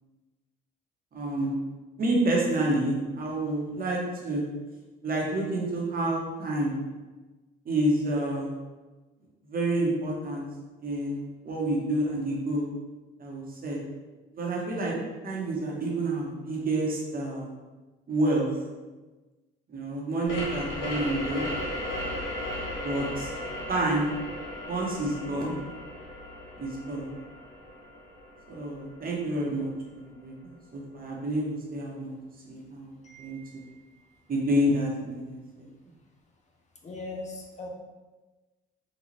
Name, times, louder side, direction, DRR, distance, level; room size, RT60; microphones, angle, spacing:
voice 1, 1.1-1.5 2.0-4.4 5.0-6.8 7.6-8.5 9.5-10.4 10.8-12.7 13.2-13.8 14.3-14.9 15.2-17.5 18.1-18.5 19.7-21.5 22.8-23.3 23.7-24.1 24.7-25.6 26.6-27.1 28.5-29.7 30.2-30.3 30.7-32.1 32.5-33.4 34.3-35.7, right 1 dB, 45° right, -2 dB, 1.0 m, -28 dB
sound 1, 20.3-29.6, left 1 dB, 90° left, 0.9 m, -36 dB
voice 2, 33.0-34.0 36.8-37.7, left 2 dB, 35° left, 1 dB, 0.6 m, -41 dB
3.8 x 2.4 x 3.1 m, 1.2 s
cardioid pair, 90°, 20 cm